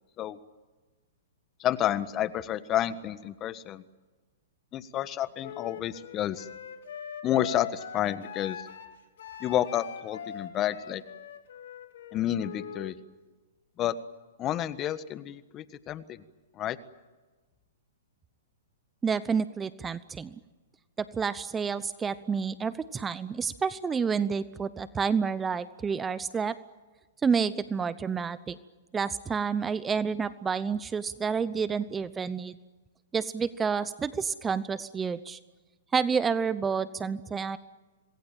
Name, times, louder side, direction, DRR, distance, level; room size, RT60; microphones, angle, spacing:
voice 1, 1.6-3.8 4.7-6.5 7.2-8.7 9.4-11.0 12.1-13.0 13.8-14.0 14.4-16.2 16.5-16.8, left 11 dB, 30° left, 14 dB, 1.4 m, -30 dB
Wind instrument woodwind instrument, 5.4-12.9, left 9 dB, 70° left, 3.5 m, -42 dB
voice 2, 19.0-20.3 21.0-26.6 27.2-28.6 28.9-32.6 33.1-35.4 35.9-37.6, right 6 dB, 15° right, 15 dB, 0.8 m, -29 dB
26.5 x 20.5 x 9.1 m, 1.3 s
hypercardioid pair, 130°, 0 cm